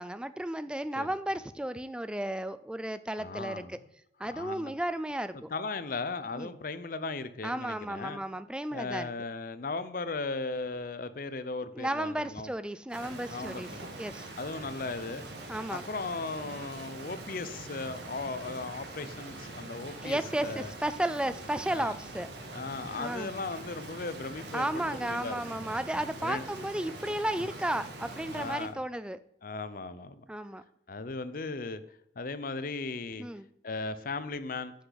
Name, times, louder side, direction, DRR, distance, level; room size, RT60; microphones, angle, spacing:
voice 1, 0.0-3.8 4.2-5.5 6.4-6.5 7.4-9.1 11.8-13.7 14.0-14.3 15.5-15.8 20.0-22.3 23.0-23.3 24.5-29.2 30.3-30.6 33.2-33.5, right 1 dB, 5° right, 13 dB, 0.3 m, -33 dB
voice 2, 3.2-3.8 4.2-4.7 5.5-8.2 8.7-12.5 13.3-14.0 14.4-15.2 15.7-20.7 21.7-21.9 22.5-25.5 26.2-26.4 28.3-28.8 29.4-30.2 30.9-31.8 32.2-33.3 33.6-34.7, left 3 dB, 50° left, 13 dB, 0.6 m, -37 dB
Rain, 12.9-28.7, right 2 dB, 75° right, 1.9 m, -43 dB
9.6 x 6.6 x 4.0 m, 0.74 s
head